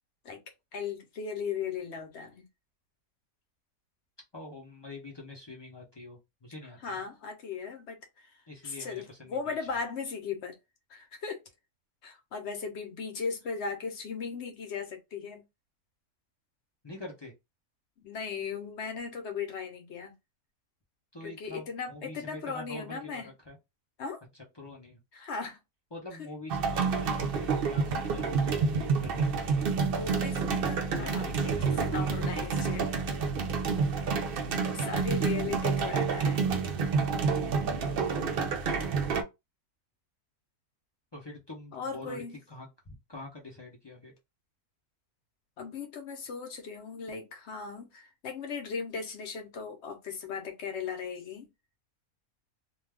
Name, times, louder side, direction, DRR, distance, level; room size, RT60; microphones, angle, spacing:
voice 1, 0.7-2.5 6.8-8.3 8.6-10.5 10.9-11.4 12.0-15.4 18.0-20.1 21.2-23.3 24.0-24.2 25.1-25.6 26.2-26.3 29.9-32.9 34.7-36.4 41.7-42.4 45.6-51.5, left 5 dB, 60° left, 0.9 m, -37 dB
voice 2, 4.3-7.0 8.5-9.7 16.8-17.3 21.1-23.6 24.5-25.0 25.9-29.8 30.9-32.1 41.1-44.1, left 2 dB, 30° left, 0.5 m, -45 dB
sound 1, 26.5-39.2, right 5 dB, 65° right, 0.5 m, -29 dB
2.5 x 2.3 x 3.3 m
omnidirectional pair, 1.5 m